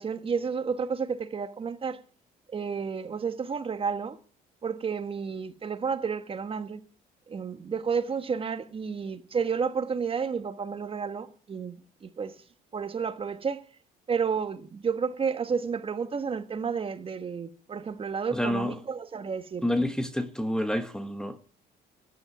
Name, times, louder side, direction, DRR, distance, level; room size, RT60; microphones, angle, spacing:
voice 1, 0.0-2.0 2.5-4.2 4.6-6.8 7.3-12.3 12.7-13.6 14.1-19.9, right 6 dB, 35° right, 1.3 m, -31 dB
voice 2, 18.3-18.8 19.6-21.4, left 1 dB, 5° left, 1.2 m, -28 dB
13.5 x 11.0 x 6.0 m
cardioid pair, 110°, 17 cm